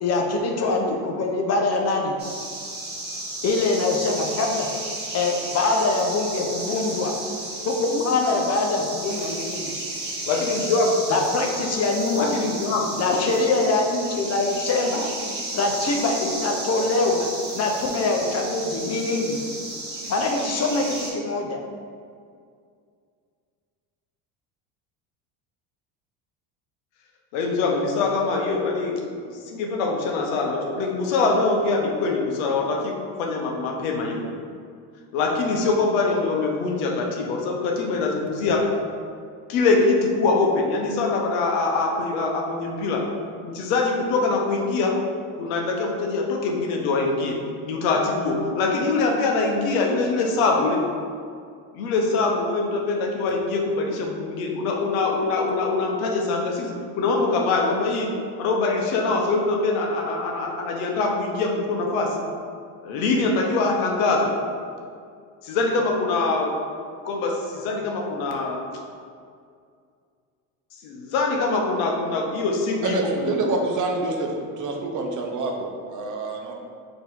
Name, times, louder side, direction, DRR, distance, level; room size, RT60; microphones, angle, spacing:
voice 1, 0.0-2.2 3.4-4.7 5.1-7.1 7.6-9.7 11.1-12.3 13.0-15.1 15.5-19.4 20.1-21.6, left 3 dB, 35° left, 2 dB, 0.7 m, -23 dB
sound 1, 2.2-21.1, right 2 dB, 25° right, 1.4 m, -33 dB
voice 2, 10.2-10.9 12.1-13.2 27.3-29.0 29.5-34.2 35.1-38.8 39.5-43.1 43.4-45.0 45.4-50.9 51.7-62.3 62.8-64.4 65.4-66.6 67.0-68.6 70.8-73.4, left 3 dB, 75° left, 1 dB, 0.8 m, -23 dB
voice 3, 72.8-76.5, right 2 dB, 45° right, 1 dB, 0.8 m, -27 dB
4.0 x 2.9 x 3.7 m, 2.2 s
hypercardioid pair, 80°, 43 cm